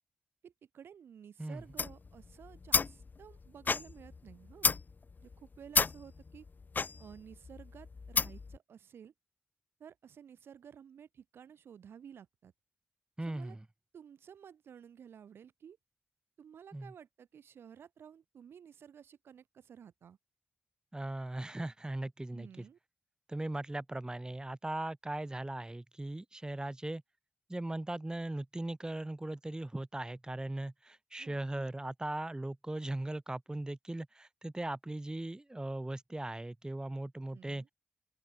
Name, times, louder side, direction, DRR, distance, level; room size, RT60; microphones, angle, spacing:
voice 1, 0.4-4.7 5.2-6.5 7.0-9.1 9.8-12.5 13.2-13.6 13.9-15.8 16.4-20.2 22.3-22.8 31.2-31.4 37.3-37.7, right 8 dB, 85° right, 4.2 m, -53 dB
sound 1, 1.6-8.6, left 4 dB, 50° left, 1.0 m, -33 dB
voice 2, 13.2-13.6 16.7-16.9 20.9-22.5 23.3-27.0 27.5-37.7, right 1 dB, 20° right, 1.2 m, -39 dB
open air
supercardioid pair, 40°, 4 cm